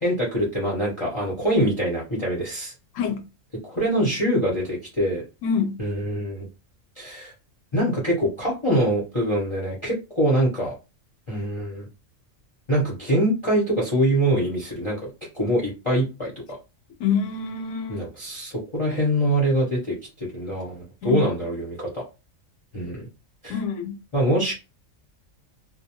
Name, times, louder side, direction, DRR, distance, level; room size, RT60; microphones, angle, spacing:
voice 1, 0.0-2.7 3.7-5.2 5.8-6.5 7.0-7.3 7.7-10.7 11.3-11.9 12.7-15.1 15.3-16.3 17.9-22.0 22.7-23.1 23.4-23.6 24.1-24.6, right 1 dB, 30° left, 0.6 m, -24 dB
voice 2, 3.0-3.3 5.4-5.8 17.0-18.0 21.0-21.3 23.5-23.9, left 6 dB, 75° left, 1.0 m, -26 dB
2.2 x 2.1 x 2.8 m
omnidirectional pair, 1.4 m